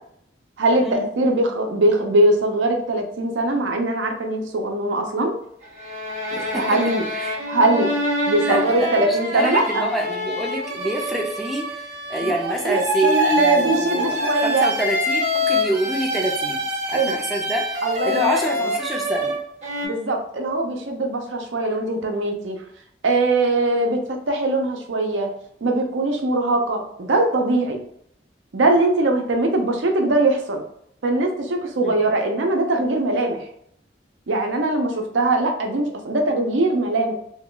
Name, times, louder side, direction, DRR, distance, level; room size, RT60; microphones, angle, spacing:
voice 1, 0.6-5.3 6.3-7.1 7.5-7.9 8.3-9.9 12.2-14.7 16.9-17.2 17.8-18.6 19.8-22.6 23.0-25.3 25.6-27.8 28.5-30.6 31.0-33.5 34.3-37.1, right 2 dB, 90° right, 3 dB, 0.6 m, -21 dB
sound 1, 5.6-19.9, left 1 dB, 35° right, 0.8 m, -25 dB
voice 2, 6.3-6.8 7.1-7.3 8.4-17.7 18.0-19.4 31.8-32.0, right 1 dB, ahead, 0 dB, 0.4 m, -27 dB
2.9 x 2.3 x 3.7 m, 0.70 s
head